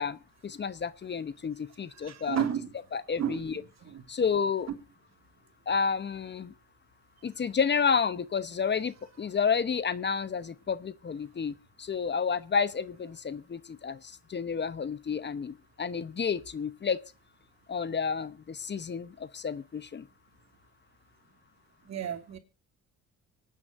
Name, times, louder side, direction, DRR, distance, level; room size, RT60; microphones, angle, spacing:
voice 1, 0.0-2.4 2.9-3.6 4.1-4.7 5.7-6.5 7.2-17.0 17.7-20.1, left 6 dB, 35° left, 0.9 m, -30 dB
voice 2, 2.0-2.7 3.2-3.4 3.8-4.0 21.9-22.4, right 9 dB, 60° right, 2.9 m, -32 dB
25.0 x 9.7 x 2.6 m
cardioid pair, 90°, 30 cm